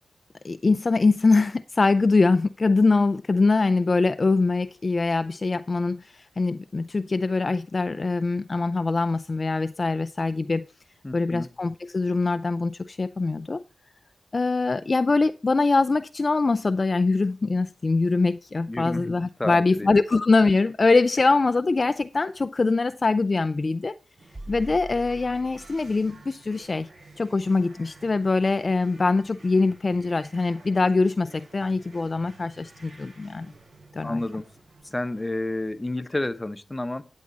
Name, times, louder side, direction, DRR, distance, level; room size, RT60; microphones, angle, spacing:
voice 1, 0.4-10.7 11.1-13.6 14.3-24.0 24.5-26.9 27.2-33.5 33.9-34.2, left 3 dB, 45° left, 0.4 m, -23 dB
voice 2, 11.0-11.5 18.7-19.9 34.0-34.5 34.8-37.1, left 2 dB, 20° left, 0.9 m, -30 dB
sound 1, 24.2-36.0, right 2 dB, 75° right, 5.9 m, -52 dB
sound 2, 24.3-26.2, right 1 dB, 20° right, 0.7 m, -42 dB
9.4 x 7.3 x 4.0 m
supercardioid pair, 40°, 0 cm